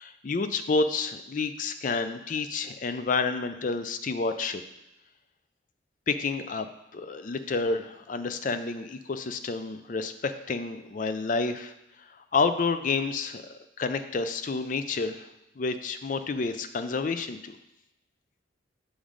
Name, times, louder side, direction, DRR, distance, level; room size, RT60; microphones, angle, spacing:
voice 1, 0.0-4.6 6.1-6.7 6.9-11.7 12.3-15.3 15.6-17.6, left 4 dB, 45° left, 10 dB, 0.4 m, -29 dB
7.1 x 3.7 x 5.0 m, 0.89 s
head